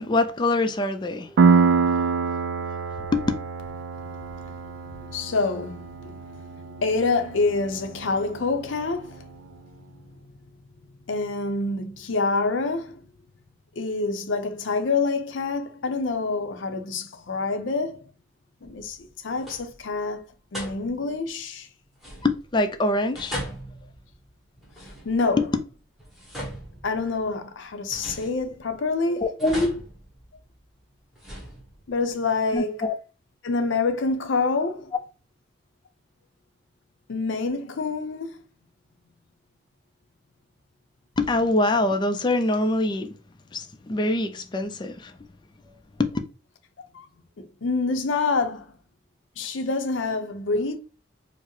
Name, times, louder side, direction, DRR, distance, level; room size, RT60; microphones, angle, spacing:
voice 1, 0.0-1.6 3.1-3.2 22.2-23.4 25.4-25.5 29.0-29.8 32.5-32.9 41.2-43.1 43.5-45.1 46.0-46.1, left 2 dB, 25° left, 0.3 m, -24 dB
Piano, 1.4-8.8, right 5 dB, 65° right, 0.3 m, -25 dB
voice 2, 5.0-9.3 11.1-13.0 13.8-18.1 18.6-20.2 20.5-21.7 25.0-25.6 26.8-29.4 31.9-32.9 33.4-34.9 37.1-38.4 46.9-47.0 47.4-48.7 49.4-50.8, left 3 dB, 85° left, 0.6 m, -27 dB
sound 1, 18.6-19.1 19.4-19.9 20.5-21.2 22.0-22.6 23.1-25.4 26.0-27.3 27.9-28.9 29.4-30.6 31.1-32.0, equal, ahead, 1.2 m, -39 dB
4.5 x 2.0 x 2.9 m
head